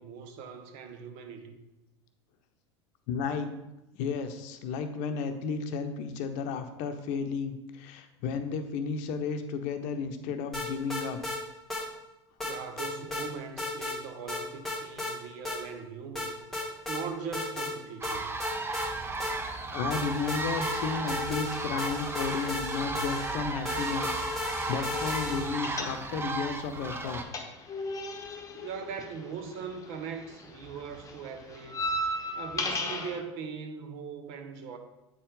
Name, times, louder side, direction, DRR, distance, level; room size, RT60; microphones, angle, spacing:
voice 1, 0.0-1.6 12.4-16.3 16.6-18.3 28.5-32.0 32.4-34.8, right 6 dB, 55° right, 6 dB, 1.0 m, -40 dB
voice 2, 3.1-3.5 3.9-11.2 19.7-27.2, left 5 dB, 55° left, 8 dB, 0.7 m, -33 dB
sound 1, 10.5-11.4 11.7-11.8 12.4-13.3 13.6-14.0 14.3-15.1 15.5-15.6 16.2-17.0 17.3-17.7 18.0-19.6 19.9-25.7, left 2 dB, ahead, 1.7 m, -35 dB
sound 2, 18.0-27.2, right 3 dB, 15° right, 0.6 m, -35 dB
sound 3, 25.6-26.4 26.6-30.0 30.3-33.2, left 1 dB, 20° left, 1.0 m, -34 dB
8.2 x 4.3 x 3.8 m, 0.95 s
hypercardioid pair, 85°, 15 cm